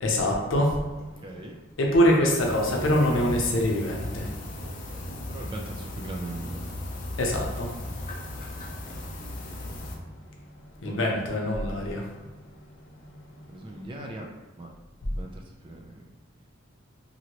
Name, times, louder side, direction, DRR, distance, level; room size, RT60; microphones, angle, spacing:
voice 1, 0.0-0.8 1.8-4.3 7.2-7.7 10.8-12.1, left 1 dB, 85° left, 0 dB, 0.6 m, -24 dB
voice 2, 1.0-1.6 4.6-6.6 10.8-11.1 13.5-14.3 14.6-14.7 15.1-16.0, right 2 dB, 25° right, 1 dB, 0.3 m, -40 dB
sound 1, 2.4-10.0, left 1 dB, 45° left, 0.4 m, -37 dB
2.9 x 2.7 x 2.8 m, 1.1 s
head